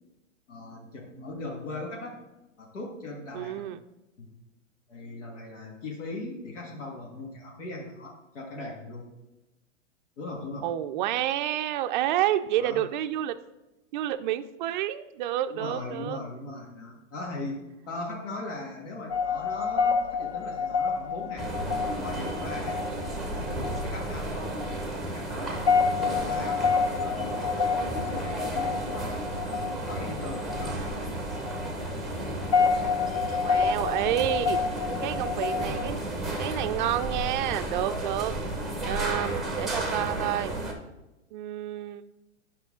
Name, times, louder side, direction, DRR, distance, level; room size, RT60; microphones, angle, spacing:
voice 1, 0.5-2.2 2.6-3.6 4.2-4.3 4.9-9.2 10.2-10.7 12.6-12.8 15.5-17.6 17.9-21.5 22.0-22.9 23.3-26.6 27.0-29.1 29.9-31.1, left 2 dB, 75° left, -1 dB, 1.9 m, -39 dB
voice 2, 3.3-3.8 10.6-13.4 13.9-16.2 33.4-34.6 35.0-38.3 38.8-40.5 41.3-42.0, right 12 dB, 40° right, 8 dB, 0.4 m, -29 dB
sound 1, 19.1-35.9, left 5 dB, 30° left, 0.4 m, -29 dB
sound 2, 21.4-40.7, right 1 dB, ahead, 0.9 m, -33 dB
9.1 x 5.6 x 3.7 m, 1.0 s
hypercardioid pair, 140°, 37 cm